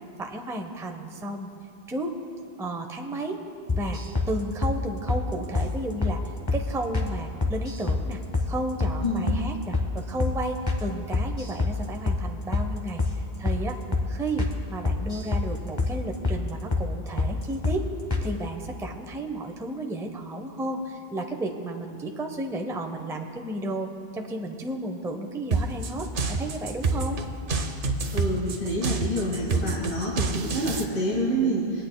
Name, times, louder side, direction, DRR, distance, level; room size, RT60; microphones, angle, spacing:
voice 1, 0.2-1.5 1.9-2.1 2.6-3.4 3.7-4.0 4.3-6.2 6.5-8.2 8.5-13.8 14.1-17.9 18.2-27.2, right 1 dB, 5° right, 3 dB, 0.4 m, -33 dB
sound 1, 3.7-4.3 4.6-4.8 5.1-5.2 5.5-5.7 6.0-6.2 6.5-6.6 6.9-7.1 7.4-8.0 8.3-8.5 8.8-9.0 9.3-9.4 9.7-9.9 10.2-10.4 10.7-10.8 11.1-11.8 12.1-12.2 12.5-12.7 13.0-13.2 13.4-13.6 13.9-14.1 14.4-14.5 14.8-15.5 15.8-15.9 16.2-16.4 16.7-16.9 17.2-17.3 17.6-17.8 18.1-18.3, left 3 dB, 25° left, 0.9 m, -25 dB
sound 2, 25.5-30.8, right 3 dB, 60° right, 0.8 m, -27 dB
voice 2, 28.1-31.8, right 1 dB, 90° left, -6 dB, 1.9 m, -27 dB
24.5 x 9.1 x 2.2 m, 2.6 s
omnidirectional pair, 1.1 m